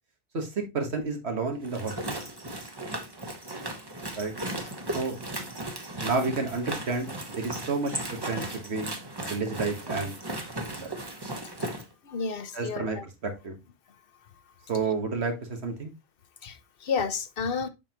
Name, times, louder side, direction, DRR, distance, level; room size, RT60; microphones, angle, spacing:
voice 1, 0.3-2.2 4.2-4.3 4.9-5.2 6.0-8.0 8.3-10.1 10.7-10.9 12.5-13.0 13.2-13.6 14.7-15.9, right 4 dB, 90° right, 1.8 m, -30 dB
sound 1, 1.6-11.8, right 1 dB, 25° right, 1.1 m, -36 dB
voice 2, 12.0-13.0 16.4-17.7, left 5 dB, 65° left, 0.9 m, -31 dB
7.1 x 5.6 x 3.0 m
omnidirectional pair, 1.1 m